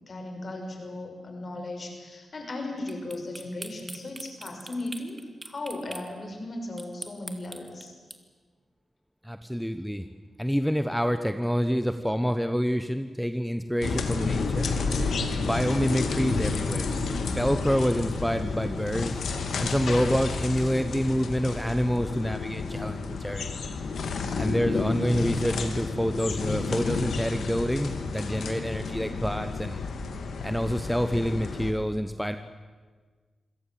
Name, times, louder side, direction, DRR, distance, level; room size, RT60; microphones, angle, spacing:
voice 1, 0.1-7.9, left 2 dB, 55° left, 3 dB, 5.7 m, -36 dB
sound 1, 2.9-6.1 6.8-8.2, right 2 dB, 25° right, 2.4 m, -41 dB
voice 2, 9.2-10.0 10.4-14.7 15.4-16.9 17.2-19.2 19.6-23.6 24.4-29.8 30.4-32.4, equal, ahead, 9 dB, 1.2 m, -27 dB
sound 2, 13.8-31.7, left 4 dB, 75° left, 2.2 m, -31 dB
26.5 x 17.0 x 7.7 m, 1.5 s
cardioid pair, 50°, 0 cm